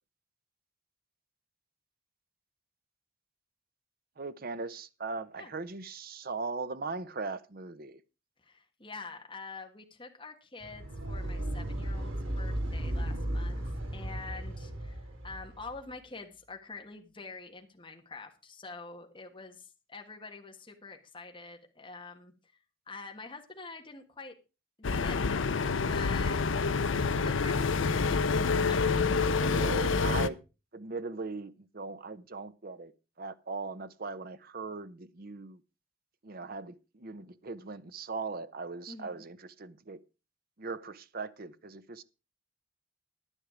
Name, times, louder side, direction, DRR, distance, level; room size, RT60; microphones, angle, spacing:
voice 1, 4.2-8.0 29.5-30.4 30.7-32.9 33.2-35.6 36.2-40.0 40.6-42.0, right 4 dB, 45° right, 0.7 m, -39 dB
voice 2, 8.4-13.6 13.9-24.3 24.8-25.4 25.7-28.8 38.9-39.2, left 3 dB, 25° left, 1.5 m, -46 dB
sound 1, 10.6-15.8, right 1 dB, 80° right, 3.8 m, -35 dB
sound 2, 24.8-30.3, left 4 dB, 75° left, 0.6 m, -27 dB
10.5 x 9.9 x 4.9 m
head